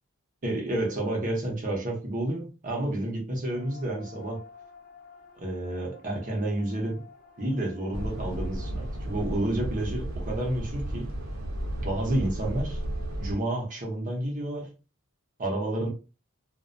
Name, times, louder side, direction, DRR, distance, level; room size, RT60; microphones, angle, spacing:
voice 1, 0.4-4.4 5.4-7.0 7.4-11.1 11.8-12.8 13.2-14.7 15.4-15.9, right 1 dB, 40° right, 0.8 m, -30 dB
sound 1, 3.5-9.3, left 5 dB, 40° left, 0.5 m, -51 dB
sound 2, 7.9-13.3, right 1 dB, 80° right, 0.6 m, -33 dB
2.4 x 2.1 x 2.5 m
head